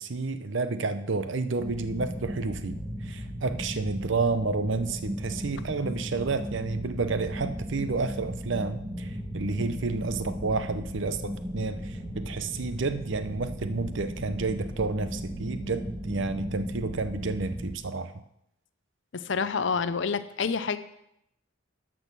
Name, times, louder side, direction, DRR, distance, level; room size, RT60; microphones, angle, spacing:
voice 1, 0.0-18.1, right 3 dB, 60° right, 10 dB, 0.7 m, -30 dB
sound 1, 1.6-17.8, equal, 15° right, 1.5 m, -36 dB
voice 2, 19.1-20.8, left 5 dB, 60° left, 11 dB, 0.6 m, -28 dB
12.0 x 6.2 x 6.1 m, 0.79 s
head